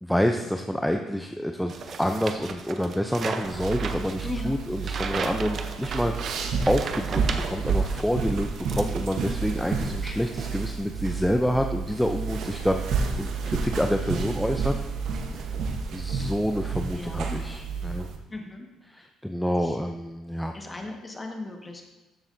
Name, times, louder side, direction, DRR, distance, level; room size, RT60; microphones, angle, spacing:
voice 1, 0.0-6.3 6.7-14.7 15.9-18.1 18.9-20.6, equal, ahead, 4 dB, 0.5 m, -28 dB
sound 1, 1.7-8.1 8.4-9.4, right 5 dB, 50° right, 0.7 m, -36 dB
sound 2, 3.4-18.2, right 5 dB, 70° right, 1.0 m, -30 dB
voice 2, 4.2-4.6 16.9-17.4 18.3-18.7 19.6-19.8 20.5-21.8, left 2 dB, 20° left, 2 dB, 1.5 m, -37 dB
13.0 x 7.1 x 2.7 m, 1.1 s
cardioid pair, 95°, 0 cm